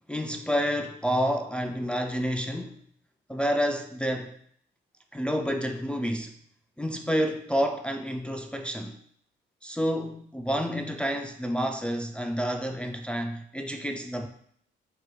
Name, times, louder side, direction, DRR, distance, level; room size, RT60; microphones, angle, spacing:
voice 1, 0.1-2.8 3.3-4.4 5.1-6.3 6.8-9.0 9.6-14.3, equal, 5° left, 0.4 m, -29 dB
4.7 x 4.5 x 2.2 m
cardioid pair, 90°, 20 cm